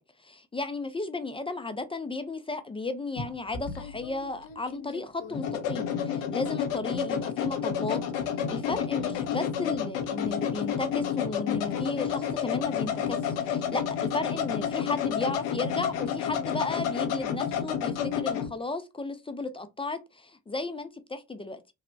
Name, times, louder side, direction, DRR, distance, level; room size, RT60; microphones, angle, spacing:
voice 1, 0.2-8.0 8.3-13.2 13.5-21.6, left 3 dB, 15° left, 0.4 m, -34 dB
sound 1, 3.2-18.5, left 8 dB, 80° left, 0.6 m, -30 dB
3.0 x 2.0 x 2.6 m
hypercardioid pair, 50°, 33 cm